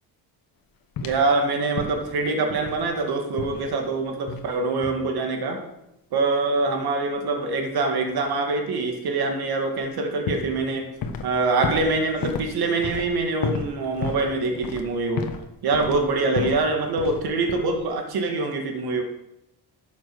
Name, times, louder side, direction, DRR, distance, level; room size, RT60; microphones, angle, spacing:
sound 1, 1.0-1.3 1.8-2.2 2.5-2.9 3.4-3.7 4.3-4.6 4.8-5.1 9.7-9.9 10.3-11.4 11.6-15.5 15.7-16.7 17.0-17.2 17.5-17.8, left 5 dB, 60° left, 1.3 m, -32 dB
voice 1, 1.0-5.6 6.1-10.9 11.2-15.3 15.6-19.0, right 3 dB, 65° right, 3 dB, 2.3 m, -24 dB
12.0 x 7.1 x 6.2 m, 0.86 s
cardioid pair, 125°, 40 cm